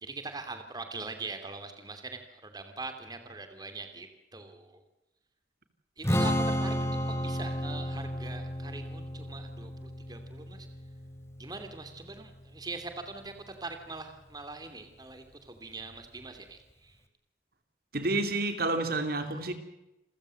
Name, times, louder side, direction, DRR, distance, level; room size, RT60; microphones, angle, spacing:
voice 1, 0.0-4.8 6.0-10.7 11.4-17.0 19.3-19.4, right 3 dB, 25° right, 8 dB, 2.9 m, -42 dB
Strum, 6.0-12.3, equal, 15° left, 2.6 m, -32 dB
voice 2, 17.9-19.5, right 2 dB, 55° right, 8 dB, 2.9 m, -29 dB
29.0 x 15.5 x 7.8 m, 0.92 s
head